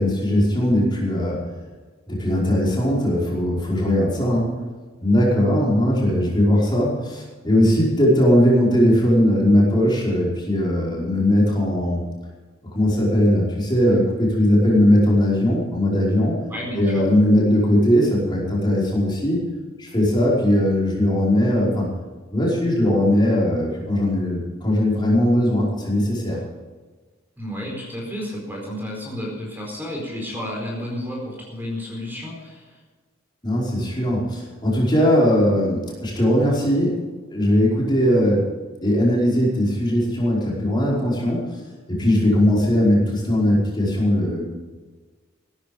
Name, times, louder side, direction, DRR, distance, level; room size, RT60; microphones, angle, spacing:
voice 1, 0.0-1.4 2.1-4.5 5.0-12.0 12.7-16.4 16.7-19.4 19.8-21.9 22.3-26.4 33.4-37.0 37.3-38.4 38.8-41.5 41.9-44.4, equal, 20° left, -5 dB, 5.1 m, -19 dB
voice 2, 16.5-17.0 27.4-32.8, equal, 10° right, -2 dB, 4.5 m, -31 dB
16.5 x 13.5 x 5.3 m, 1.4 s
head